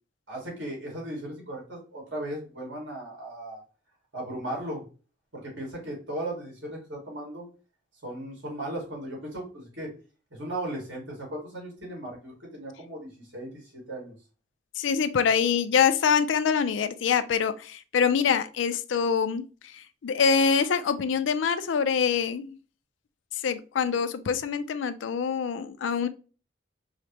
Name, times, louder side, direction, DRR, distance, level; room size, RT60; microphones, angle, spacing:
voice 1, 0.3-3.6 4.1-4.8 5.3-7.5 8.0-9.9 10.3-14.1, right 1 dB, 75° right, -2 dB, 1.9 m, -37 dB
voice 2, 14.8-19.5 19.7-22.6 23.4-26.1, left 6 dB, 80° left, 12 dB, 0.4 m, -25 dB
4.9 x 2.1 x 2.8 m, 0.35 s
head